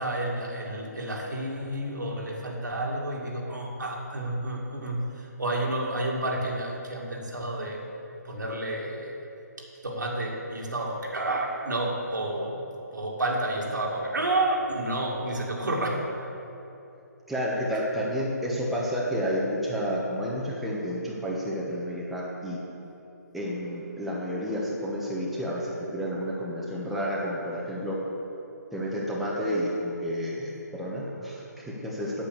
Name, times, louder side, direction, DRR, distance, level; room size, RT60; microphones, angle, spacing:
voice 1, 0.0-7.9 8.2-9.1 9.8-12.6 12.9-16.0, right 1 dB, 80° right, -1 dB, 2.3 m, -30 dB
voice 2, 17.3-22.6 23.3-28.0 28.7-32.2, equal, ahead, -6 dB, 1.2 m, -30 dB
8.7 x 8.5 x 6.7 m, 2.9 s
figure-of-eight pair, 145°, 10 cm